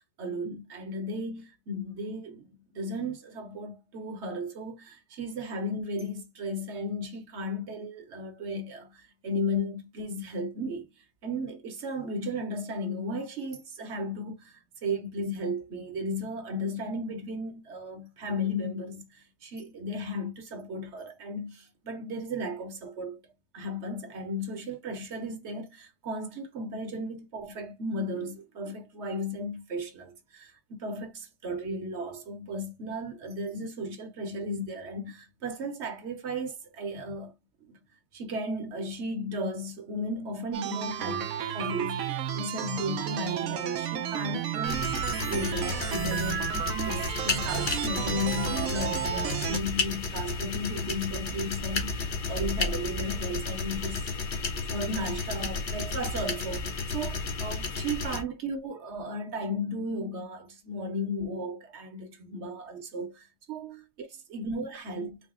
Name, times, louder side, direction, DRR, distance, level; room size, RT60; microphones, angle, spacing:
voice 1, 0.0-2.5 2.7-10.9 11.2-23.2 23.5-37.3 37.6-37.8 38.1-42.1 42.3-46.5 46.8-65.2, equal, 50° right, 1.0 m, -35 dB
sound 1, 40.5-49.6, right 9 dB, 70° right, 0.8 m, -32 dB
sound 2, 44.6-58.2, left 4 dB, 85° left, 0.4 m, -32 dB
4.0 x 2.2 x 3.6 m
omnidirectional pair, 1.9 m